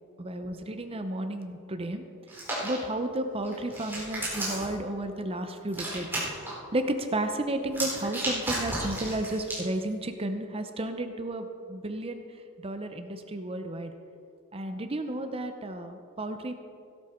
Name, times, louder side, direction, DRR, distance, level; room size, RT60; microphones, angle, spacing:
voice 1, 0.2-2.0 2.6-6.1 6.4-12.2 12.6-13.9 14.5-16.5, right 1 dB, 25° right, 7 dB, 0.6 m, -32 dB
Hands, 2.3-2.7 3.4-4.7 5.7-6.5 7.6-9.6, right 1 dB, 10° right, 4.0 m, -33 dB
16.5 x 11.5 x 4.4 m, 2.5 s
head